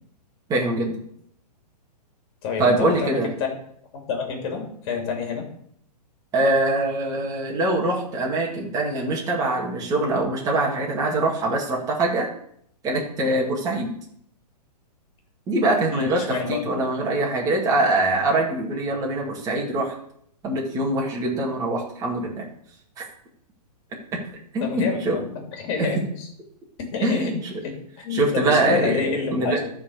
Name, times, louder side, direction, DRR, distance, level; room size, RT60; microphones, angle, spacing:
voice 1, 0.5-1.0 2.6-3.3 6.3-12.3 12.8-13.9 15.5-19.9 20.4-22.5 23.0-23.1 24.1-24.2 24.5-25.2 25.8-26.0 27.0-27.4 28.1-29.0 29.3-29.6, right 2 dB, 15° right, -3 dB, 2.2 m, -23 dB
voice 2, 2.4-3.5 3.9-5.5 15.9-16.6 24.6-26.3 26.8-27.3 27.6-29.7, left 5 dB, 40° left, 3 dB, 3.2 m, -28 dB
13.0 x 4.5 x 6.7 m, 0.68 s
hypercardioid pair, 150°, 21 cm